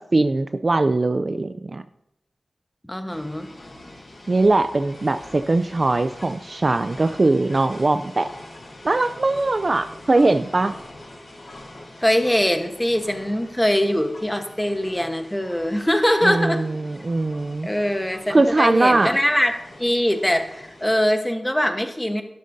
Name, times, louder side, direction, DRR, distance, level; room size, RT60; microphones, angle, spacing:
voice 1, 0.0-1.8 4.3-8.3 8.8-10.8 16.2-17.7 18.3-19.2, right 2 dB, 40° right, 10 dB, 0.4 m, -21 dB
voice 2, 2.9-3.5 12.0-16.6 17.6-19.5 19.8-22.2, equal, 10° left, 6 dB, 1.1 m, -22 dB
sound 1, 3.1-20.9, left 1 dB, 70° left, 4.1 m, -44 dB
13.0 x 12.0 x 2.7 m, 0.85 s
wide cardioid pair, 85°, 0 cm